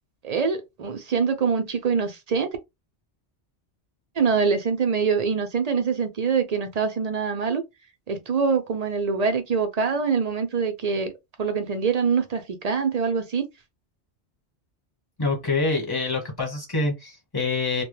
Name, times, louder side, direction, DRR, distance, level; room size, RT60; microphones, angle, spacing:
voice 1, 0.2-2.5 4.2-7.6 8.1-11.1 11.4-13.5, right 5 dB, 60° right, 0.4 m, -24 dB
voice 2, 15.2-17.8, left 3 dB, 20° left, 1.0 m, -26 dB
2.2 x 2.1 x 3.0 m
omnidirectional pair, 1.1 m